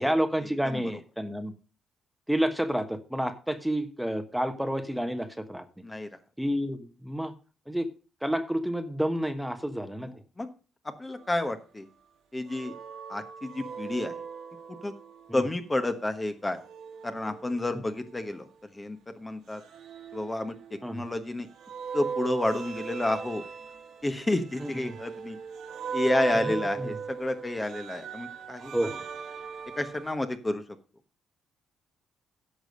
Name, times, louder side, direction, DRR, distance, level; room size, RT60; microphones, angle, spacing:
voice 1, 0.0-1.5 2.3-5.6 6.4-7.3 7.7-7.9 8.2-10.1 15.3-15.4 20.8-21.0 24.6-24.9 26.4-26.9 28.6-29.1, equal, 5° right, 9 dB, 1.2 m, -30 dB
voice 2, 10.0-10.5 10.8-11.9 12.3-12.7 13.1-14.1 14.7-14.9 15.3-16.6 17.0-19.6 20.1-21.5 21.9-23.4 24.0-25.4 25.9-28.9 29.8-30.6, left 2 dB, 20° left, 8 dB, 1.2 m, -30 dB
sound 1, 12.5-15.4 16.6-18.4 19.5-21.1 21.6-30.2, right 6 dB, 75° right, 2.0 m, -38 dB
10.5 x 6.3 x 6.4 m, 0.36 s
cardioid pair, 90°, 0 cm